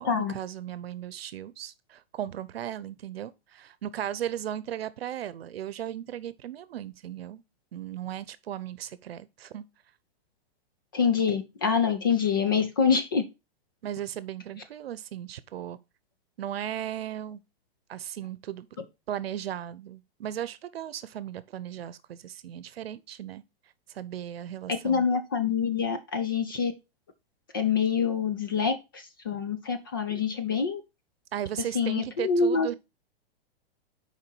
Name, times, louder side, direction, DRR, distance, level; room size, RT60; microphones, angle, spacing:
voice 1, 0.0-7.4 7.7-9.6 13.8-15.8 16.4-17.4 17.9-18.7 19.1-23.4 23.9-25.1 31.3-32.7, right 11 dB, 75° right, 0.8 m, -36 dB
voice 2, 10.9-13.2 24.7-26.7 27.5-30.8 31.7-32.7, left 6 dB, 25° left, 0.4 m, -26 dB
6.8 x 4.8 x 4.5 m
hypercardioid pair, 175°, 30 cm